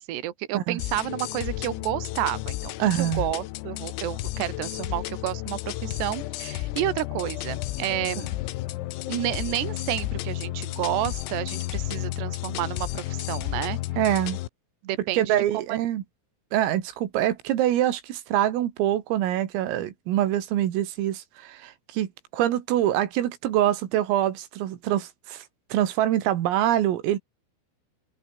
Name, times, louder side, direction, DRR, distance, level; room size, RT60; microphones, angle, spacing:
voice 1, 0.0-8.3 9.1-13.8 14.8-15.8, right 14 dB, 60° right, 3.8 m, -30 dB
sound 1, 0.8-14.5, left 17 dB, 90° left, 3.9 m, -32 dB
voice 2, 2.8-3.2 14.0-14.4 15.1-16.0 16.5-25.5 25.7-27.2, right 12 dB, 85° right, 4.8 m, -25 dB
open air
omnidirectional pair, 5.8 m